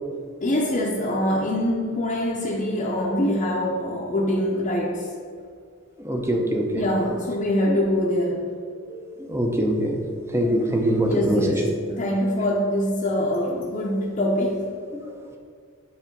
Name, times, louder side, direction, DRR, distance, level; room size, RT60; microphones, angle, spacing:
voice 1, 0.4-5.1 6.7-8.5 11.0-14.7, left 1 dB, 35° left, -5 dB, 0.7 m, -24 dB
voice 2, 6.0-6.9 7.7-7.8 8.9-10.0 10.3-11.6, right 1 dB, 10° right, 2 dB, 0.6 m, -23 dB
7.2 x 3.3 x 5.2 m, 2.2 s
head